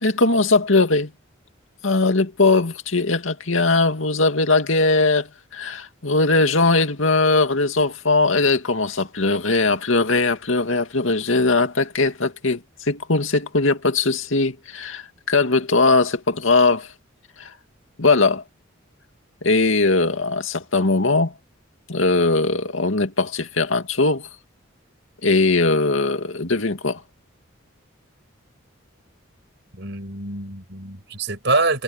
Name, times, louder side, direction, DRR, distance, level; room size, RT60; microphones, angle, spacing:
voice 1, 0.0-1.1 1.8-16.9 17.4-17.5 18.0-18.4 19.4-21.3 21.9-24.3 25.2-27.0, left 3 dB, 75° left, 2.4 m, -20 dB
voice 2, 29.7-31.8, right 3 dB, 60° right, 6.8 m, -25 dB
head